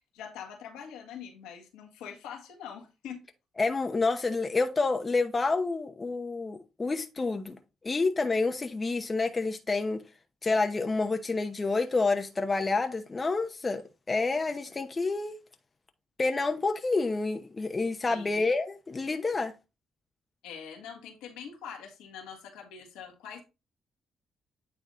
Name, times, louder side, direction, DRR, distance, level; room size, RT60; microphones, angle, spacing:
voice 1, 0.1-3.2 18.1-18.4 20.4-23.4, left 7 dB, 80° left, 1.6 m, -44 dB
voice 2, 3.6-7.6 7.8-10.0 10.4-15.4 16.2-19.5, left 3 dB, 35° left, 0.9 m, -28 dB
9.0 x 3.5 x 3.8 m
hypercardioid pair, 50°, 0 cm